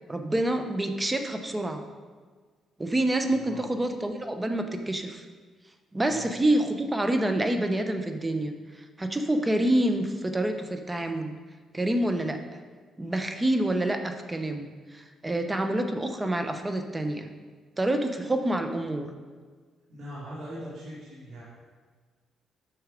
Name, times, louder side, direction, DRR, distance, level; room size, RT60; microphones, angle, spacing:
voice 1, 0.1-1.8 2.8-5.2 5.9-8.5 9.0-11.3 11.7-12.4 13.0-17.3 17.8-19.1, right 1 dB, 15° right, 6 dB, 0.9 m, -27 dB
voice 2, 3.3-3.6 6.0-6.3 19.9-21.4, equal, 60° right, -8 dB, 2.7 m, -41 dB
8.1 x 6.3 x 5.1 m, 1.5 s
cardioid pair, 90°, 0 cm